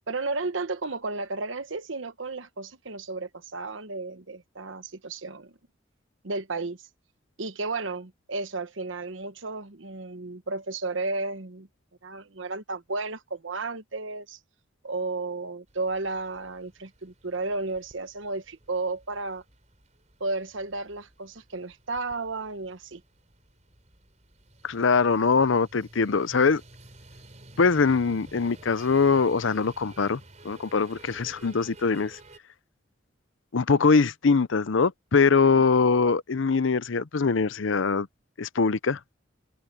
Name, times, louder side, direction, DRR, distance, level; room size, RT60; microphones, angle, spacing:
voice 1, 0.1-5.6 6.2-6.9 7.4-11.7 12.0-14.4 14.8-19.4 20.2-23.0, right 3 dB, 70° right, 1.2 m, -33 dB
sound 1, 15.7-32.4, right 2 dB, 35° right, 5.0 m, -52 dB
voice 2, 24.6-26.6 27.6-30.2 30.4-32.2 33.5-38.1 38.4-39.0, left 4 dB, 70° left, 0.6 m, -22 dB
head